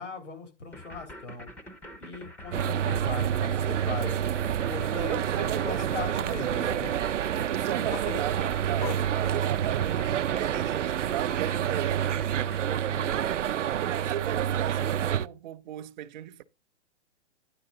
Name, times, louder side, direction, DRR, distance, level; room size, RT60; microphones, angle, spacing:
voice 1, 0.0-1.5 2.0-4.1 4.7-6.9 7.6-8.1 12.9-13.3, left 5 dB, 85° left, 3.1 m, -39 dB
sound 1, 0.7-12.6, equal, 5° left, 0.5 m, -45 dB
sound 2, 2.5-15.3, right 10 dB, 90° right, 0.5 m, -28 dB
voice 2, 4.9-6.9 7.4-12.4 13.0-16.4, right 13 dB, 40° right, 0.6 m, -37 dB
sound 3, 7.9-10.5 10.9-12.9, left 10 dB, 40° left, 0.7 m, -43 dB
10.0 x 6.4 x 3.9 m
hypercardioid pair, 135°, 36 cm